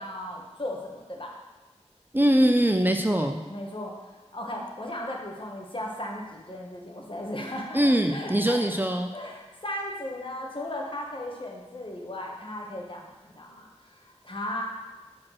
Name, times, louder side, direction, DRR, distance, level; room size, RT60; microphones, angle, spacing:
voice 1, 0.0-1.3 3.5-8.6 9.1-14.6, left 1 dB, 50° left, -1 dB, 1.3 m, -36 dB
voice 2, 2.1-3.4 7.7-9.1, right 1 dB, 15° right, 4 dB, 0.5 m, -22 dB
6.0 x 4.4 x 6.3 m, 1.2 s
wide cardioid pair, 40°, 12 cm